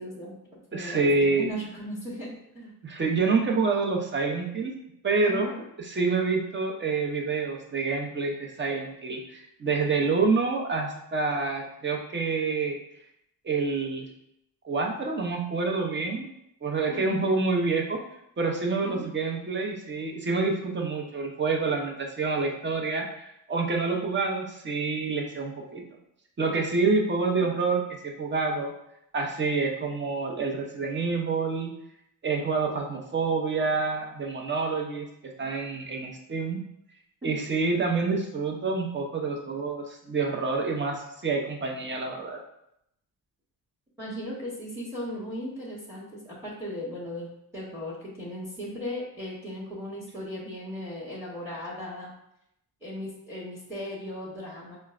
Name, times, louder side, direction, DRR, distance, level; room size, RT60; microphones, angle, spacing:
voice 1, 0.0-2.7 5.2-5.6 16.9-17.3 18.8-19.0 27.4-27.5 37.2-37.3 44.0-52.1 52.8-54.8, equal, 5° right, -6 dB, 1.0 m, -37 dB
voice 2, 0.7-1.5 2.8-4.7 5.0-5.5 5.8-12.8 13.4-14.1 14.6-16.3 16.6-18.0 18.4-25.8 26.4-28.7 29.1-31.7 32.2-36.6 37.2-42.4, right 4 dB, 30° right, 1 dB, 0.7 m, -27 dB
4.4 x 2.1 x 2.4 m, 0.78 s
cardioid pair, 80°, 38 cm